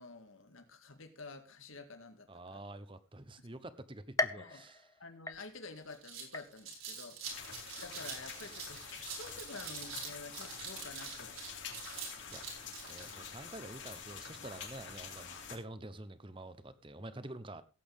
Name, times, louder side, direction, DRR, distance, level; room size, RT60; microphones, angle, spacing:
voice 1, 0.0-2.6 3.4-3.5 4.4-4.6 5.0-7.5 7.8-11.4, left 3 dB, 85° left, 7 dB, 2.0 m, -50 dB
voice 2, 2.3-4.8 12.3-17.6, right 1 dB, 25° right, 13 dB, 0.9 m, -48 dB
sound 1, 4.2-5.9 6.3-6.9 7.4-7.5 8.5-8.6, left 3 dB, 15° left, 0.5 m, -38 dB
sound 2, 5.3-5.4 5.8-13.1, right 6 dB, 90° right, 4.9 m, -45 dB
sound 3, 7.2-15.6, left 6 dB, 65° left, 3.6 m, -47 dB
17.0 x 8.7 x 3.5 m, 0.31 s
head